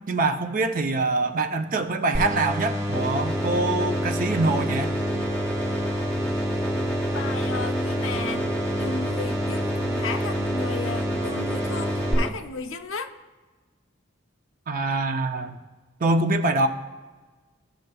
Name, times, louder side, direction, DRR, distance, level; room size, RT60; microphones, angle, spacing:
voice 1, 0.1-4.9 14.7-15.6 16.0-16.7, right 2 dB, 45° right, 6 dB, 0.6 m, -24 dB
sound 1, 2.1-12.1, left 1 dB, 15° right, 1.1 m, -28 dB
sound 2, 2.9-12.3, right 1 dB, 5° left, 0.6 m, -30 dB
voice 2, 7.1-8.4 8.8-13.1, left 4 dB, 75° left, 6 dB, 0.6 m, -34 dB
14.5 x 6.5 x 2.3 m, 1.3 s
head